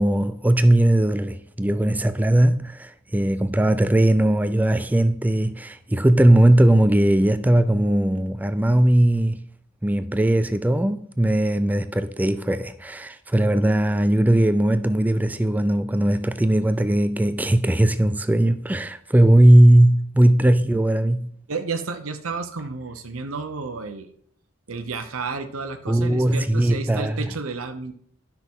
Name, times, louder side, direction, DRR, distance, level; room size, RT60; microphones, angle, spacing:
voice 1, 0.0-9.4 9.8-21.3 25.9-27.2, right 1 dB, 10° right, 0.4 m, -19 dB
voice 2, 21.5-24.1 24.7-27.9, right 4 dB, 85° right, 0.8 m, -31 dB
12.0 x 5.8 x 3.7 m
head